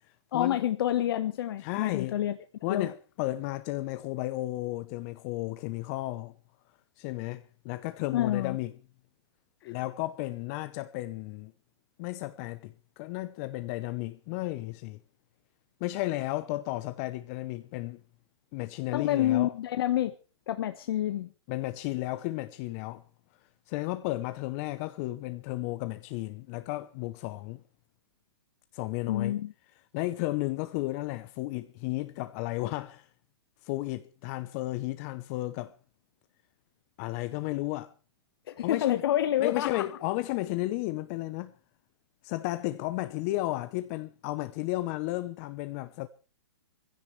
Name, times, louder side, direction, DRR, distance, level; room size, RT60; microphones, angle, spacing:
voice 1, 0.3-2.4 2.7-2.9 8.1-8.6 18.9-20.1 20.5-21.3 29.1-29.5 38.5-39.8, left 12 dB, 60° left, 1.1 m, -28 dB
voice 2, 1.6-2.2 2.6-6.3 7.0-8.7 9.6-11.5 12.0-15.0 15.8-18.0 18.5-19.5 21.5-23.0 23.7-27.6 28.7-29.3 29.9-33.1 33.6-35.7 37.0-37.9 38.6-39.0 39.4-41.5 42.2-46.1, left 18 dB, 35° left, 0.8 m, -33 dB
21.0 x 16.0 x 3.3 m
hypercardioid pair, 145°, 14 cm